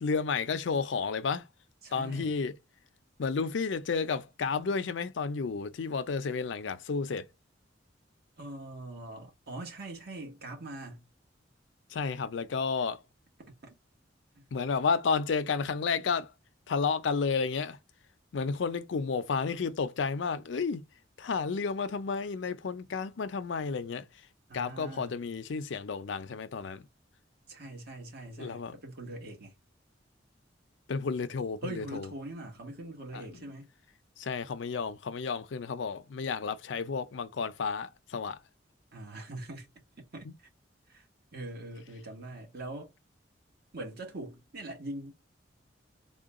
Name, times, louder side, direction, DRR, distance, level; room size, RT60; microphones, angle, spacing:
voice 1, 0.0-1.5 1.9-2.5 3.2-7.3 11.9-13.0 14.5-16.3 16.7-17.8 18.3-20.8 21.2-24.1 24.5-26.8 28.4-28.8 30.9-32.1 33.1-33.4 34.2-38.4 40.2-40.3, left 5 dB, 70° left, 0.5 m, -31 dB
voice 2, 1.8-2.3 8.4-11.1 13.6-13.7 14.3-14.5 24.5-25.1 27.5-29.5 31.6-33.7 38.9-39.7 40.0-40.5 40.9-41.1 41.3-42.9 43.7-45.1, right 2 dB, 60° right, 1.4 m, -42 dB
3.8 x 2.2 x 3.5 m
head